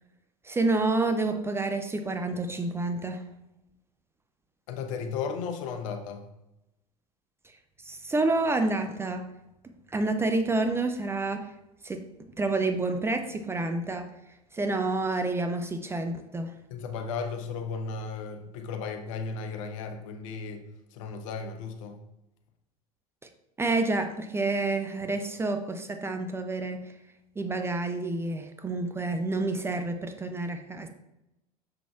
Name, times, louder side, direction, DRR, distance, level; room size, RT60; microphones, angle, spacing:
voice 1, 0.4-3.2 7.8-9.3 9.9-11.5 11.8-12.0 12.4-14.1 14.5-16.5 23.6-26.8 27.4-30.9, right 2 dB, 15° right, 6 dB, 0.5 m, -28 dB
voice 2, 4.7-6.3 16.7-20.6 20.9-22.0, left 5 dB, 55° left, 6 dB, 0.8 m, -35 dB
6.8 x 6.0 x 2.3 m, 0.88 s
figure-of-eight pair, 75°, 20 cm